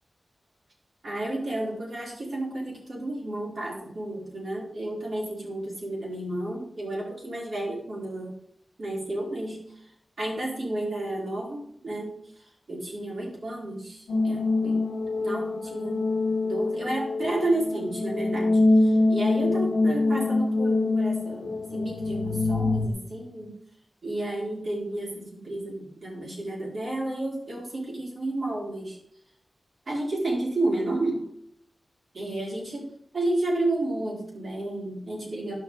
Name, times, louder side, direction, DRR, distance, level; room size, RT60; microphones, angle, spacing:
voice 1, 1.0-8.3 8.8-9.7 10.2-12.2 12.7-14.8 15.2-16.1 16.4-18.5 18.8-23.6 24.0-29.0 29.9-31.3 32.1-32.9 33.1-35.5, right 1 dB, 70° right, -4 dB, 3.9 m, -31 dB
sound 1, 14.1-22.9, left 2 dB, 80° left, 0.9 m, -25 dB
11.0 x 6.6 x 3.6 m, 0.67 s
cardioid pair, 50°, 0 cm